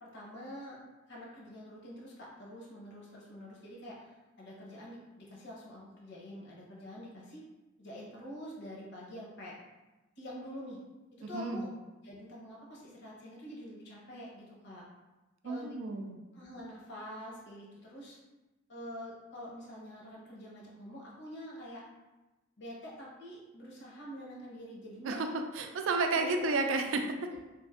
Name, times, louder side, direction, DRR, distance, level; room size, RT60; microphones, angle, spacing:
voice 1, 0.0-0.8 1.1-7.4 7.8-9.5 10.2-10.8 11.2-11.7 12.0-14.8 15.4-15.8 16.3-18.2 18.7-21.8 22.6-25.2 26.1-26.5 27.3-27.4, equal, 60° left, -4 dB, 0.8 m, -46 dB
voice 2, 11.2-11.7 15.4-16.2 25.0-25.3 25.5-27.3, right 3 dB, 85° right, 5 dB, 0.3 m, -31 dB
3.1 x 2.5 x 2.4 m, 1.1 s
head